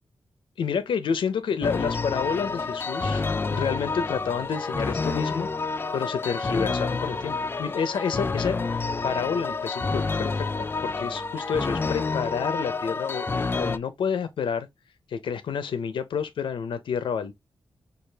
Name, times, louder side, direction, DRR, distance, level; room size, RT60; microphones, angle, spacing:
voice 1, 0.6-5.5 5.9-14.7 15.1-17.3, left 6 dB, 85° left, 0.5 m, -29 dB
sound 1, 1.6-13.8, left 4 dB, 25° left, 0.3 m, -28 dB
4.9 x 2.4 x 3.3 m
wide cardioid pair, 130°, 8 cm